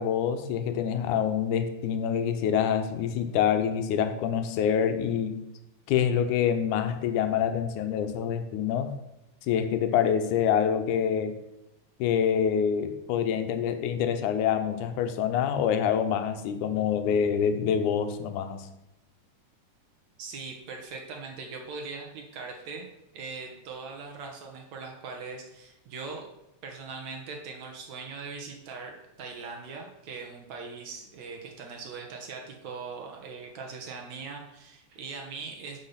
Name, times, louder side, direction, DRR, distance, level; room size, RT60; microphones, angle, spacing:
voice 1, 0.0-5.4 5.9-8.9 9.4-11.4 12.0-18.7, left 8 dB, 80° left, 8 dB, 2.3 m, -26 dB
voice 2, 20.2-22.9 23.1-26.3 26.6-35.8, right 4 dB, 65° right, 1 dB, 2.3 m, -40 dB
10.5 x 5.3 x 5.8 m, 0.90 s
omnidirectional pair, 3.6 m